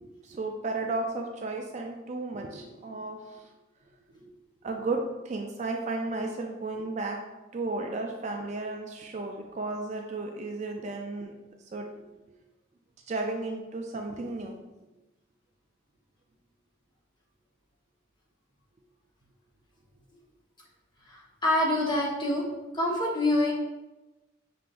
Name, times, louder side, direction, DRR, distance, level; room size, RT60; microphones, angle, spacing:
voice 1, 0.0-3.4 4.2-4.3 4.6-7.2 7.5-11.3 11.7-12.0 13.1-14.6, right 2 dB, 35° right, 2 dB, 0.3 m, -34 dB
voice 2, 21.0-22.5 22.7-23.5, left 1 dB, 20° left, -4 dB, 1.0 m, -26 dB
5.7 x 3.8 x 2.5 m, 1.1 s
head